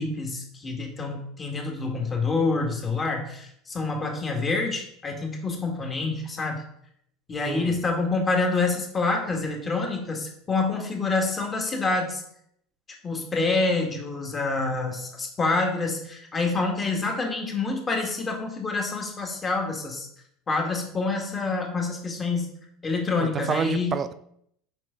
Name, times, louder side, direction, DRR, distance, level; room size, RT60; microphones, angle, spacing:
voice 1, 0.0-6.6 7.3-12.2 13.0-20.1 20.5-22.5 22.8-24.0, left 3 dB, 25° left, 2 dB, 1.9 m, -27 dB
voice 2, 23.2-24.1, right 7 dB, 30° right, 13 dB, 0.5 m, -29 dB
7.4 x 5.3 x 3.9 m, 0.70 s
figure-of-eight pair, 75°, 0 cm